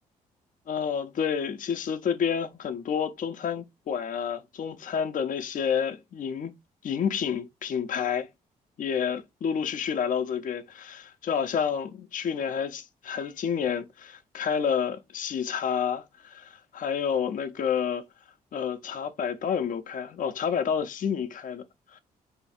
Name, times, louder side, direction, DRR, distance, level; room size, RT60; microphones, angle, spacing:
voice 1, 0.7-6.5 6.8-8.3 8.8-18.0 18.5-21.6 21.9-22.0, left 7 dB, 45° left, 0.6 m, -29 dB
2.7 x 2.3 x 4.1 m
hypercardioid pair, 45°, 19 cm